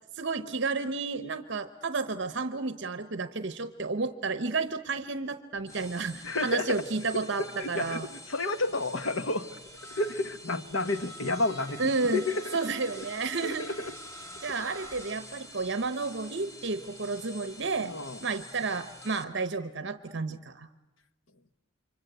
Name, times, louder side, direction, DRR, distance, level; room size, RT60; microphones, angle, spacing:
voice 1, 0.1-8.1 11.8-12.2 12.5-13.7 14.4-17.9 18.2-20.7, right 4 dB, 60° right, 10 dB, 0.9 m, -31 dB
sound 1, 5.5-19.2, equal, 15° left, 1.9 m, -46 dB
voice 2, 6.2-6.8 7.4-9.6 9.9-12.6 13.0-13.1 13.4-13.9 17.8-18.2 20.3-20.4, left 2 dB, 75° left, 11 dB, 1.3 m, -31 dB
29.0 x 25.0 x 8.0 m, 1.0 s
head